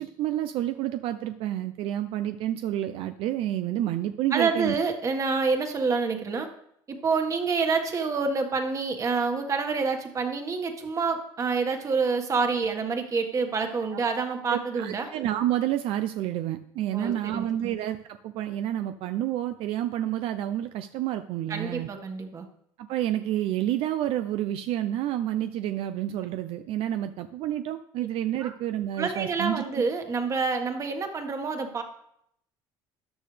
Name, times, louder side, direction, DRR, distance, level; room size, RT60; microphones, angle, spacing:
voice 1, 0.0-4.7 14.5-21.9 22.8-29.6, right 12 dB, 70° right, 9 dB, 0.6 m, -29 dB
voice 2, 4.3-6.5 6.9-15.1 16.9-17.7 21.5-22.5 28.4-28.5 29.0-31.8, right 4 dB, 35° right, 5 dB, 1.7 m, -27 dB
13.5 x 10.0 x 3.4 m, 0.72 s
cardioid pair, 125°, 10 cm